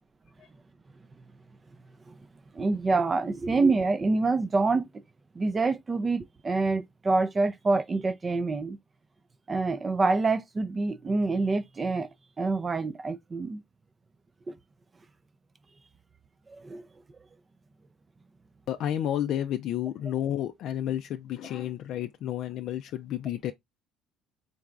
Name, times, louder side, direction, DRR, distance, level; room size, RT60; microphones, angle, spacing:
voice 1, 2.5-4.9 5.4-8.8 9.5-12.1 12.4-13.6 14.5-14.6 16.5-16.8, right 3 dB, 25° right, 0.4 m, -26 dB
voice 2, 18.7-23.5, left 11 dB, 65° left, 0.3 m, -31 dB
3.9 x 3.3 x 2.4 m
cardioid pair, 115°, 0 cm